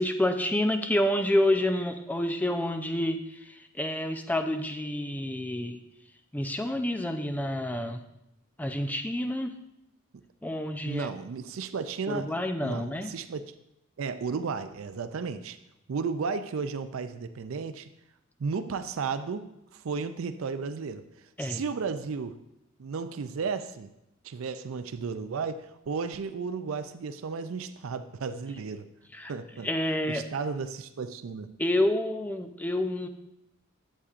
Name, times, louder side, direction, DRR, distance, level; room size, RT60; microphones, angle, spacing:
voice 1, 0.0-5.8 6.3-8.0 8.6-9.5 10.4-11.1 12.1-13.1 21.4-21.6 29.1-29.3 29.6-30.2 31.6-33.1, left 1 dB, 10° left, 6 dB, 0.5 m, -28 dB
voice 2, 10.8-13.4 14.0-15.6 15.9-17.9 18.4-19.5 19.7-21.0 21.4-22.4 22.8-23.9 24.2-28.9 29.3-29.7 30.1-31.5, right 5 dB, 70° right, 11 dB, 0.4 m, -34 dB
11.5 x 8.1 x 2.5 m, 0.85 s
head